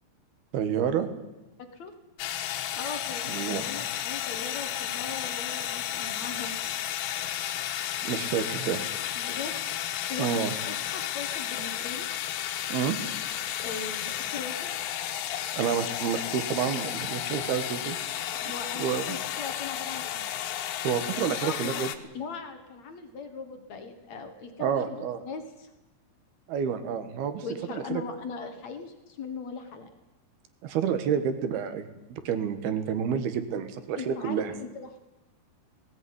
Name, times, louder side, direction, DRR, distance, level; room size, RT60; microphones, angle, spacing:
voice 1, 0.5-1.1 3.3-3.6 8.0-8.8 10.2-10.5 12.7-13.0 15.5-18.0 18.8-19.2 20.8-21.9 24.6-25.2 26.5-27.4 27.7-28.0 30.6-34.5, right 8 dB, 65° right, 10 dB, 2.9 m, -29 dB
sound 1, 2.2-22.0, left 11 dB, 80° left, 3.7 m, -33 dB
voice 2, 2.8-6.5 9.2-9.5 9.8-10.3 10.7-12.1 13.6-14.7 18.4-20.3 21.4-21.7 22.1-25.7 27.4-29.9 34.0-35.0, left 5 dB, 65° left, 7 dB, 1.7 m, -39 dB
18.5 x 17.5 x 9.7 m, 1.0 s
omnidirectional pair, 5.6 m